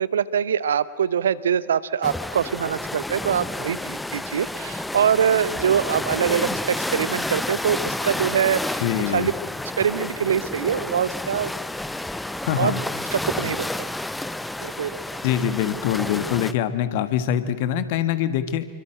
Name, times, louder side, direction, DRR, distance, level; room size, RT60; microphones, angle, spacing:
voice 1, 0.0-9.3 9.8-11.5 12.6-12.7 13.1-13.9 14.6-15.0, right 8 dB, 65° right, 17 dB, 0.9 m, -24 dB
sound 1, 2.0-16.5, left 1 dB, 5° left, 0.8 m, -30 dB
voice 2, 8.8-9.3 12.5-12.8 15.2-18.7, left 10 dB, 50° left, 11 dB, 1.7 m, -24 dB
27.5 x 24.5 x 7.8 m, 1.4 s
figure-of-eight pair, 90°, 0 cm